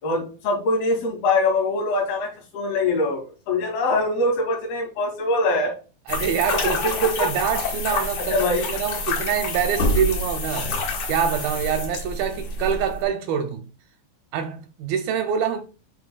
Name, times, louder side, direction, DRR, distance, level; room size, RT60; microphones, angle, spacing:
voice 1, 0.0-5.7 6.6-6.7 7.2-7.3 8.2-8.6, left 2 dB, 75° left, 4.1 m, -23 dB
sound 1, 6.1-13.0, left 2 dB, 55° left, 2.2 m, -27 dB
voice 2, 6.1-10.7 11.1-13.7 14.3-15.6, right 8 dB, 85° right, 2.2 m, -25 dB
11.0 x 3.9 x 2.2 m
omnidirectional pair, 4.5 m